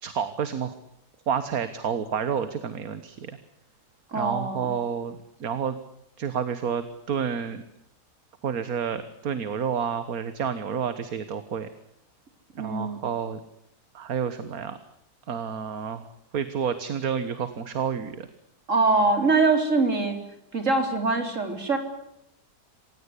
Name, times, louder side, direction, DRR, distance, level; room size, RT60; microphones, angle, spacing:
voice 1, 0.0-0.7 1.3-3.4 4.1-5.8 6.2-7.6 8.4-11.7 12.5-13.4 13.9-14.8 15.3-16.1 16.3-18.3, right 7 dB, 65° right, 12 dB, 1.8 m, -29 dB
voice 2, 4.1-4.7 12.6-13.0 18.7-20.2 20.5-21.8, right 3 dB, 50° right, 6 dB, 4.4 m, -23 dB
27.5 x 17.0 x 9.8 m, 0.77 s
omnidirectional pair, 1.7 m